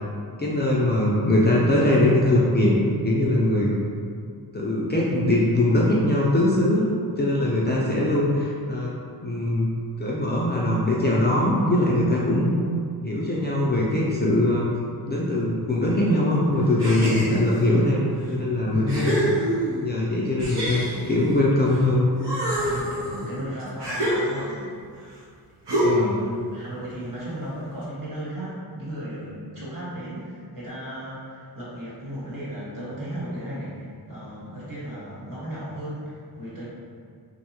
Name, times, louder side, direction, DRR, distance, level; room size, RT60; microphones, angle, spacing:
voice 1, 0.4-3.7 4.5-8.9 9.2-12.6 13.0-14.7 15.1-18.0 18.3-19.2 19.8-22.1 25.8-26.2, left 1 dB, 25° left, -5 dB, 0.3 m, -21 dB
sound 1, 16.8-17.7 18.3-18.4 18.9-19.9 20.4-21.8 22.2-24.7 25.7-26.2, equal, 85° right, 0.8 m, -26 dB
voice 2, 18.7-19.0 22.6-24.7 25.9-36.6, equal, 55° right, -9 dB, 1.1 m, -35 dB
2.5 x 2.2 x 2.8 m, 2.2 s
wide cardioid pair, 70°, 40 cm